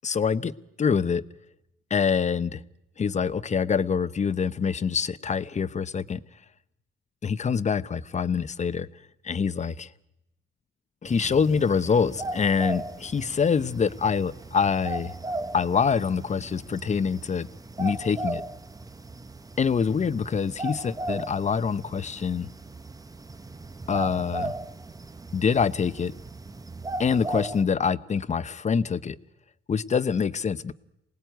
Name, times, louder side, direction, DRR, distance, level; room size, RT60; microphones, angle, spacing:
voice 1, 0.0-0.5 0.8-1.2 1.9-2.6 3.0-6.2 7.2-8.9 9.2-9.9 11.0-15.2 15.5-17.5 17.8-18.4 19.6-22.5 23.9-24.5 25.3-26.1 27.0-29.2 29.7-30.7, left 6 dB, 35° left, 1.0 m, -25 dB
sound 1, 11.1-27.6, right 2 dB, 20° right, 1.0 m, -37 dB
27.0 x 19.0 x 9.3 m
cardioid pair, 90°, 20 cm